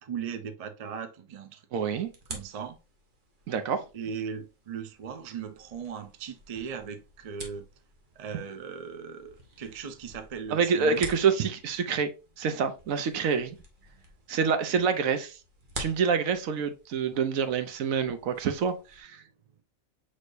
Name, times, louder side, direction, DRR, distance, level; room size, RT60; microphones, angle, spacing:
voice 1, 0.0-1.6 2.3-2.8 3.9-7.7 8.2-11.1, right 7 dB, 60° right, 0.3 m, -38 dB
voice 2, 1.7-2.1 3.5-3.8 10.5-12.1 12.4-13.5 14.3-15.4 15.8-19.2, right 6 dB, 80° right, 1.1 m, -27 dB
sound 1, 2.0-19.0, right 1 dB, 40° right, 1.2 m, -48 dB
6.2 x 3.2 x 2.6 m
omnidirectional pair, 1.4 m